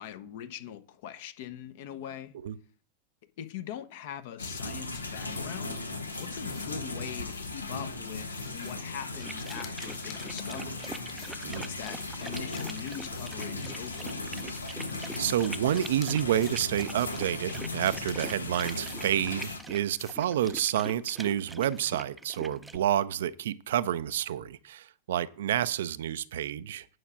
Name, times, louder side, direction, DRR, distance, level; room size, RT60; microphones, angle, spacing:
voice 1, 0.0-2.3 3.4-5.8 6.2-10.9 11.5-14.2, left 10 dB, 50° left, 1.0 m, -42 dB
sound 1, 4.4-19.6, left 2 dB, 80° left, 1.2 m, -37 dB
sound 2, 6.1-6.9 7.3-7.6 8.1-8.9 9.4-10.2 10.8-11.4 12.0-13.5 14.0-15.3 15.8-16.1 16.4-16.7 17.0-17.2 17.8-18.2 18.6-18.9 19.4-19.7 20.0-20.2 20.5-20.8, left 8 dB, 35° left, 1.7 m, -52 dB
sound 3, 9.2-22.8, right 2 dB, 5° right, 0.6 m, -44 dB
voice 2, 15.2-26.9, right 11 dB, 60° right, 0.5 m, -29 dB
9.3 x 5.9 x 6.1 m
figure-of-eight pair, 90°, 0 cm